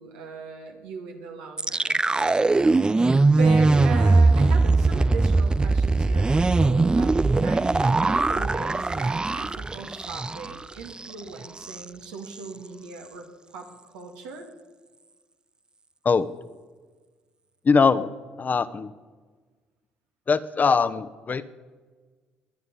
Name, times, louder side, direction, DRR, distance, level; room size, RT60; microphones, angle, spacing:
voice 1, 0.0-2.3 3.4-13.3 13.5-14.5, right 5 dB, 90° right, 2 dB, 2.2 m, -38 dB
sound 1, 1.6-10.6 10.9-11.1 11.4-11.8, right 3 dB, 20° right, 0.4 m, -21 dB
voice 2, 17.6-18.1 18.4-18.9 20.3-21.5, left 5 dB, 40° left, 12 dB, 0.9 m, -21 dB
21.5 x 9.4 x 5.5 m, 1.4 s
hypercardioid pair, 60°, 4 cm